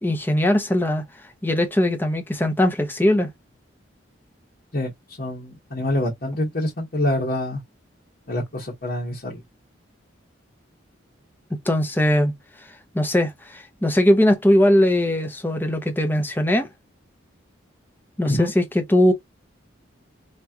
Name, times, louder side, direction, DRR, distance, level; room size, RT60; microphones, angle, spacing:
voice 1, 0.0-1.0 1.4-3.3 11.6-12.3 12.9-16.7 18.2-19.1, left 1 dB, 10° left, 1.0 m, -20 dB
voice 2, 5.2-7.6 8.3-9.4 18.2-18.5, left 1 dB, 50° left, 1.3 m, -26 dB
3.2 x 3.0 x 3.6 m
head